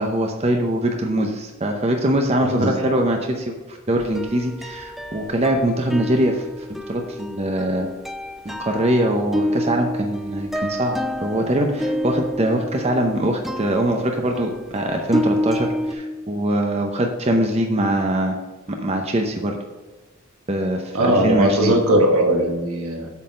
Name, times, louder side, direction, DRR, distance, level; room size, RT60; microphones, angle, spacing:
voice 1, 0.0-6.4 6.9-7.9 8.4-18.4 18.7-19.6 20.5-21.7, right 1 dB, 30° right, 3 dB, 0.7 m, -22 dB
sound 1, 4.0-5.7 5.9-15.9, equal, ahead, 0.3 m, -29 dB
voice 2, 20.9-23.1, right 1 dB, 80° right, 1 dB, 1.5 m, -19 dB
8.1 x 4.0 x 6.4 m, 1.2 s
head